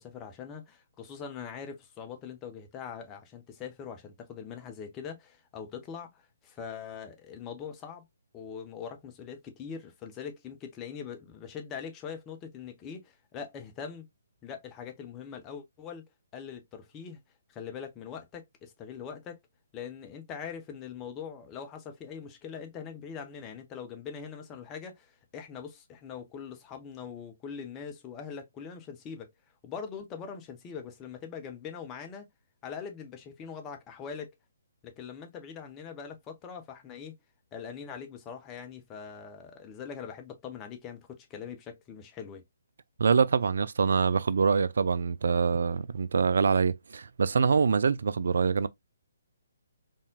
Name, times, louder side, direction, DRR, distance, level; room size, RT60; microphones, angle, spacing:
voice 1, 0.0-8.0 8.3-14.1 14.4-16.0 16.3-17.2 17.5-19.4 19.7-29.3 29.6-32.3 32.6-34.3 34.8-37.2 37.5-42.4, left 7 dB, 20° left, 1.0 m, -42 dB
voice 2, 43.0-48.7, right 5 dB, 60° right, 0.3 m, -25 dB
4.1 x 3.7 x 2.3 m
figure-of-eight pair, 135°, 0 cm